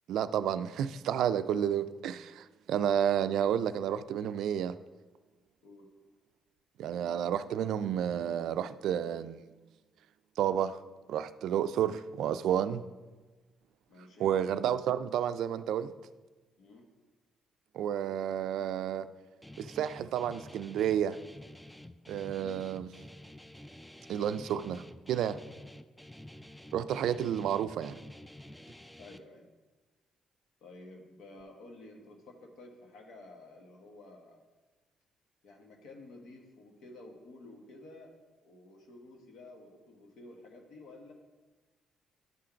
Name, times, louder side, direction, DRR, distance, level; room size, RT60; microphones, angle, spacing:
voice 1, 0.1-4.8 6.8-9.4 10.4-10.8 11.1-12.9 14.2-15.9 17.7-19.1 19.6-21.2 22.1-22.9 24.1-25.4 26.7-28.0, right 9 dB, 80° right, 0.3 m, -31 dB
voice 2, 13.9-14.3 16.6-16.8 22.4-22.6 29.0-29.5 30.6-34.4 35.4-38.1 38.4-41.1, left 2 dB, 75° left, 1.3 m, -52 dB
Guitar, 19.4-29.2, left 1 dB, 5° left, 0.3 m, -50 dB
11.0 x 3.8 x 4.4 m
cardioid pair, 90°, 0 cm